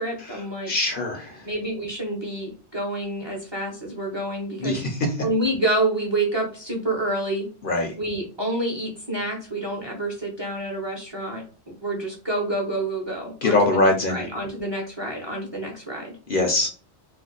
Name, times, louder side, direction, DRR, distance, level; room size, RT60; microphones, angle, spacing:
voice 1, 0.0-0.7 1.4-4.8 5.2-7.5 8.0-11.4 11.8-16.1, right 1 dB, 25° right, -1 dB, 0.7 m, -28 dB
voice 2, 0.7-1.4 4.6-5.0 7.6-7.9 13.4-14.2 16.3-16.7, left 2 dB, 55° left, 3 dB, 0.8 m, -22 dB
2.5 x 2.3 x 3.7 m, 0.37 s
omnidirectional pair, 1.2 m